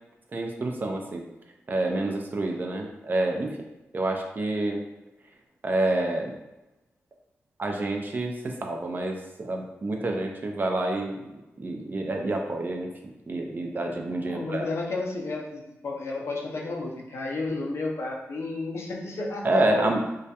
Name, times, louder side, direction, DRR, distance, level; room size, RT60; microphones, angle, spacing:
voice 1, 0.3-1.2 1.7-3.6 3.9-4.8 5.6-6.3 7.6-11.2 11.6-12.9 13.3-14.7 19.4-20.0, right 2 dB, 40° right, 2 dB, 0.4 m, -28 dB
voice 2, 14.2-19.9, left 3 dB, 60° left, -1 dB, 0.5 m, -32 dB
2.2 x 2.1 x 2.8 m, 0.99 s
cardioid pair, 70°, 5 cm